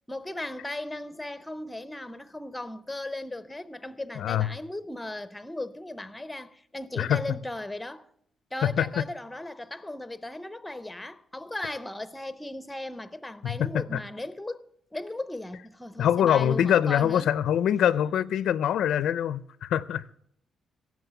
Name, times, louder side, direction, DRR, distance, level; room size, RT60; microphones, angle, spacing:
voice 1, 0.1-8.1 8.5-14.6 14.9-17.3, left 1 dB, 5° left, 0.5 m, -37 dB
voice 2, 4.2-4.5 7.0-7.2 8.6-9.0 13.4-14.0 16.0-20.0, left 10 dB, 75° left, 0.4 m, -24 dB
17.0 x 7.5 x 6.7 m
cardioid pair, 150°, 0 cm